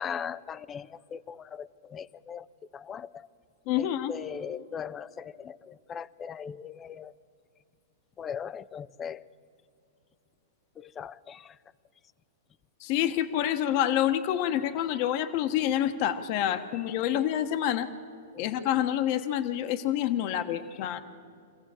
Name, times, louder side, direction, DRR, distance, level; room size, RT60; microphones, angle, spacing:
voice 1, 0.0-2.5 2.7-3.3 3.8-7.1 8.2-9.3 10.8-11.6 18.3-18.4, left 7 dB, 20° left, 17 dB, 0.5 m, -39 dB
voice 2, 3.7-4.1 12.8-17.9 18.4-21.0, left 11 dB, 45° left, 9 dB, 1.1 m, -27 dB
24.5 x 15.5 x 7.7 m, 2.6 s
hypercardioid pair, 135°, 0 cm